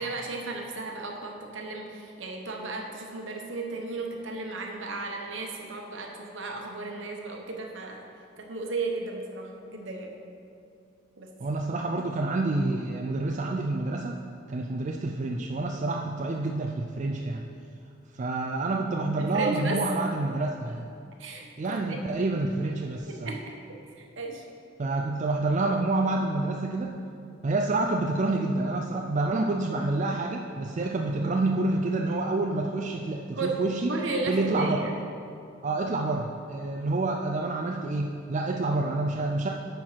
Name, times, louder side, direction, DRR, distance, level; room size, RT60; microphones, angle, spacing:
voice 1, 0.0-8.0 8.4-10.1 11.2-11.3 19.2-19.8 21.2-21.5 21.8-22.0 23.2-23.4 23.7-24.4 33.3-33.5 33.9-34.9, right 3 dB, 65° right, 1 dB, 1.0 m, -34 dB
voice 2, 11.4-14.2 14.5-17.4 18.1-20.9 21.6-23.3 24.8-27.0 27.4-33.9 34.3-34.8 35.6-39.5, right 2 dB, 35° right, 1 dB, 0.4 m, -28 dB
9.3 x 4.6 x 5.8 m, 2.5 s
head